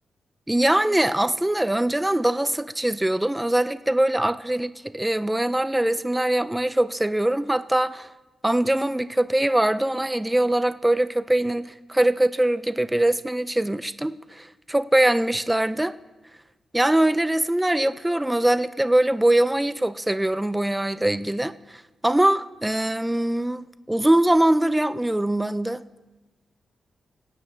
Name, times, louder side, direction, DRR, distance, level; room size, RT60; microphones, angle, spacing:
voice 1, 0.5-8.1 8.4-15.9 16.7-25.8, right 1 dB, 5° right, 13 dB, 0.3 m, -22 dB
23.0 x 9.3 x 3.2 m, 1.1 s
wide cardioid pair, 160°, 0 cm